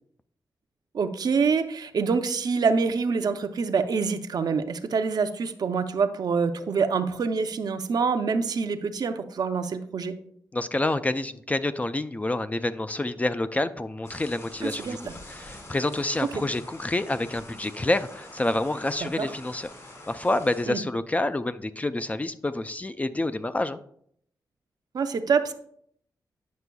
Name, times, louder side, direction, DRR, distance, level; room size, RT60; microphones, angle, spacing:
voice 1, 0.9-10.1 14.6-15.0 19.2-19.3 20.7-20.8 24.9-25.5, right 5 dB, 65° right, 8 dB, 0.5 m, -26 dB
voice 2, 10.5-19.7 20.1-23.8, left 2 dB, 20° left, 11 dB, 0.3 m, -28 dB
sound 1, 14.0-20.6, left 1 dB, 45° left, 2.7 m, -46 dB
9.4 x 6.0 x 2.3 m, 0.67 s
cardioid pair, 80°, 7 cm